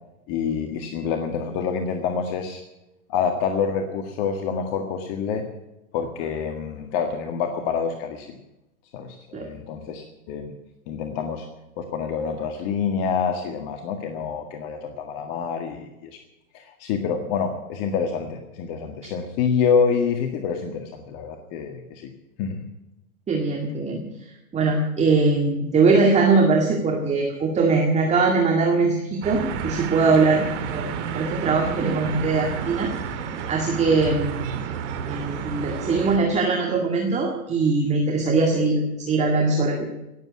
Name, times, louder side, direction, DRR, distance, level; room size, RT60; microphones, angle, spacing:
voice 1, 0.3-2.6 3.1-5.5 5.9-8.4 8.9-10.5 10.9-11.5 11.8-16.2 16.5-22.1 22.4-22.6, left 6 dB, 40° left, 5 dB, 1.8 m, -27 dB
voice 2, 23.3-24.0 24.5-30.4 30.7-30.9 31.1-32.9 33.5-34.6 35.1-39.9, right 3 dB, 15° right, 1 dB, 2.1 m, -21 dB
sound 1, 29.2-36.2, right 6 dB, 55° right, 2.7 m, -31 dB
18.0 x 8.2 x 9.6 m, 0.93 s
hypercardioid pair, 130°, 42 cm